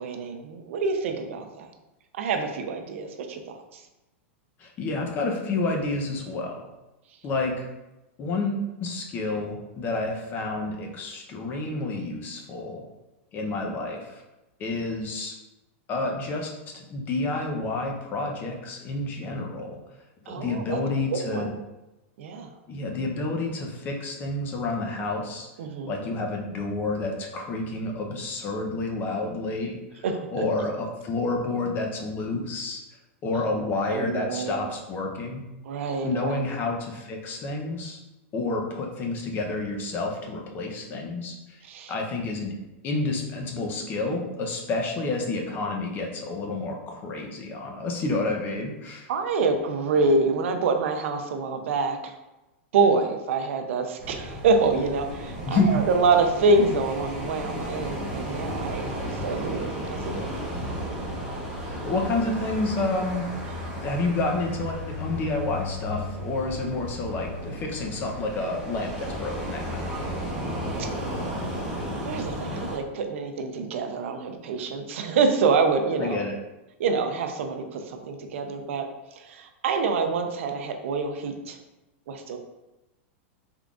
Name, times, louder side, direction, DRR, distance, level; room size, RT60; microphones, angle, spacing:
voice 1, 0.0-1.7 2.1-3.6 20.3-20.8 21.1-21.5 22.2-22.5 25.6-26.0 30.0-30.4 33.5-33.6 33.9-34.6 35.6-36.4 41.6-41.9 49.1-52.1 52.7-60.4 70.8-70.9 72.0-76.2 76.8-78.9 79.2-81.6 82.1-82.4, right 4 dB, 70° right, 6 dB, 0.5 m, -26 dB
voice 2, 4.6-6.7 7.2-7.7 8.2-12.8 13.3-14.2 14.6-15.3 15.9-19.8 20.2-21.5 22.7-25.5 25.8-29.8 30.3-32.8 33.2-35.4 36.0-38.0 38.3-41.4 41.9-42.5 42.8-49.1 55.4-55.8 61.6-63.2 63.7-70.2 76.0-76.4, left 2 dB, 30° left, 1 dB, 0.6 m, -29 dB
sound 1, 54.0-72.8, equal, 10° right, 1.1 m, -34 dB
3.7 x 3.5 x 2.4 m, 1.0 s
supercardioid pair, 140°, 7 cm